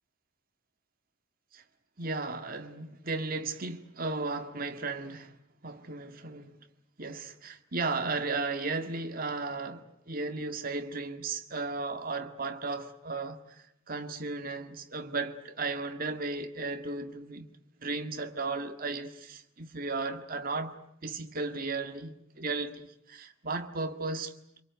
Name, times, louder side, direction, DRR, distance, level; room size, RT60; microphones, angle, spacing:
voice 1, 2.0-5.4 5.6-6.5 7.0-17.5 17.8-24.4, right 3 dB, 40° right, 1.9 m, -35 dB
26.0 x 23.5 x 9.4 m
head